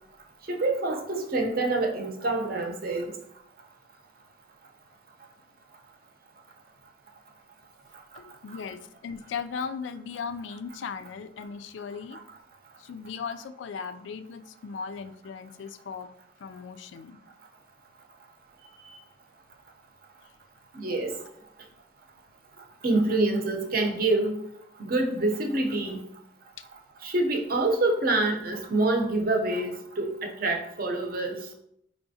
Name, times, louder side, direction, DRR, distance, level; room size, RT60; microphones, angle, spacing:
voice 1, 0.5-3.1 12.1-12.2 20.7-21.2 22.8-24.4 24.8-26.0 27.0-31.4, right 2 dB, 50° right, 2 dB, 0.6 m, -26 dB
voice 2, 8.2-12.2 12.8-16.1 16.4-17.2, left 6 dB, 80° left, 11 dB, 0.3 m, -37 dB
4.7 x 3.3 x 2.7 m, 0.71 s
head